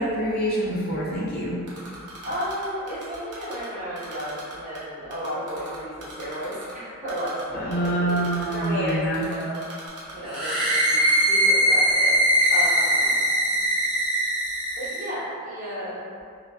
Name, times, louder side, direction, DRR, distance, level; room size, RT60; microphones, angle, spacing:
voice 1, 0.0-1.6 7.5-9.3, right 1 dB, 45° left, -7 dB, 0.4 m, -26 dB
Typing, 1.7-3.7 4.0-4.8 5.1-6.7 7.1-7.4 7.7-10.6 10.9-11.2, right 3 dB, 90° right, 0.6 m, -41 dB
voice 2, 2.2-8.2 8.5-9.6 10.1-12.2 12.5-13.1 14.8-16.0, equal, 40° right, -12 dB, 0.9 m, -33 dB
sound 1, 10.3-15.1, equal, 5° right, 0.8 m, -21 dB
2.5 x 2.2 x 2.3 m, 2.3 s
head